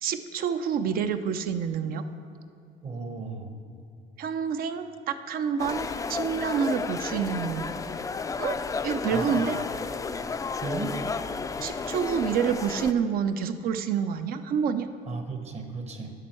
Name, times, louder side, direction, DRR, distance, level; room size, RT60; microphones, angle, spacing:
voice 1, 0.0-2.0 4.2-7.7 8.4-8.6 8.8-9.6 11.6-14.9, right 7 dB, 60° right, 10 dB, 0.5 m, -28 dB
voice 2, 2.8-3.5 9.1-9.7 10.6-11.0 15.1-16.1, right 3 dB, 40° right, 5 dB, 1.0 m, -35 dB
sound 1, 5.6-12.9, left 4 dB, 20° left, 0.3 m, -32 dB
11.0 x 6.1 x 4.4 m, 2.5 s
cardioid pair, 110°, 17 cm